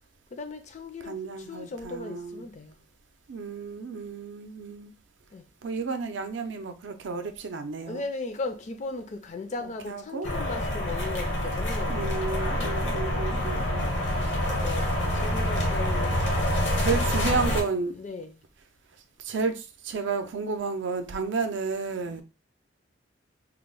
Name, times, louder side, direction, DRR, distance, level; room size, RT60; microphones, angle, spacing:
voice 1, 0.3-1.2 1.5-2.8 5.3-5.4 7.9-12.1 12.5-13.2 14.6-16.7 18.0-18.4 22.1-22.2, left 3 dB, 40° left, 0.4 m, -37 dB
voice 2, 1.0-2.5 3.3-4.9 5.6-8.0 9.6-10.3 11.9-13.9 16.8-18.0 19.2-22.2, right 4 dB, 75° right, 0.5 m, -32 dB
sound 1, 10.2-17.6, left 1 dB, 75° left, 0.9 m, -27 dB
2.9 x 2.0 x 3.7 m
head